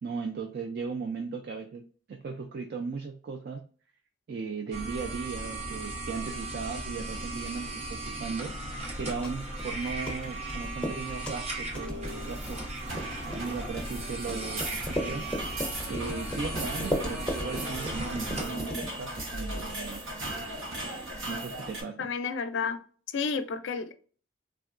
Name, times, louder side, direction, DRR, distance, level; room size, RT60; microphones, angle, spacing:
voice 1, 0.0-3.7 4.3-8.5 9.0-12.6 13.3-20.0 21.3-22.1, right 4 dB, 55° right, 4 dB, 0.3 m, -37 dB
sound 1, 4.7-18.5, right 2 dB, 35° right, 0.8 m, -37 dB
sound 2, 8.9-20.0, equal, 5° left, 0.5 m, -37 dB
sound 3, 12.0-21.8, right 1 dB, 90° right, 1.0 m, -38 dB
voice 2, 22.0-22.8 23.1-23.9, left 5 dB, 70° left, 9 dB, 0.4 m, -31 dB
3.5 x 2.2 x 2.4 m, 0.41 s
head